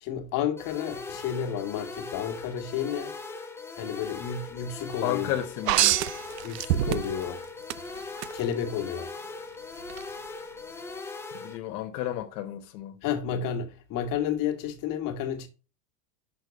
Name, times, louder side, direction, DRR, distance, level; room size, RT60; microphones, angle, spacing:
voice 1, 0.0-3.2 3.8-5.4 6.4-7.4 8.3-9.1 13.0-15.5, left 8 dB, 45° left, 1.6 m, -31 dB
sound 1, 0.6-11.6, left 3 dB, 5° left, 0.6 m, -40 dB
voice 2, 5.0-6.0 11.3-12.9, left 12 dB, 75° left, 1.3 m, -32 dB
sound 2, 5.7-7.3 7.7-8.3 9.9-10.0, right 14 dB, 85° right, 0.7 m, -25 dB
6.3 x 6.1 x 5.1 m
supercardioid pair, 145°, 47 cm